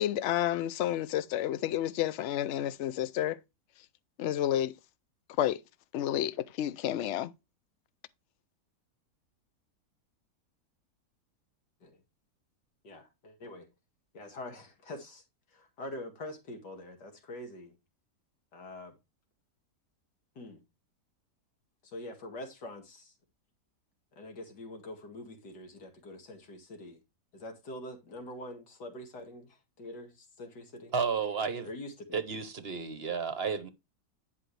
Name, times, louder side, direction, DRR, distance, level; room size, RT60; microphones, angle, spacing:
voice 1, 0.0-3.4 4.2-4.7 5.4-5.6 5.9-7.3, left 12 dB, 65° left, 0.7 m, -30 dB
voice 2, 12.8-13.7 14.1-15.2 15.5-17.7 18.5-19.0 20.4-20.6 21.8-23.1 24.2-27.0 27.3-30.9 31.6-32.2, left 1 dB, 85° left, 2.5 m, -45 dB
voice 3, 30.9-31.7 32.1-33.7, right 5 dB, 45° right, 0.9 m, -32 dB
10.5 x 5.5 x 3.2 m
omnidirectional pair, 1.7 m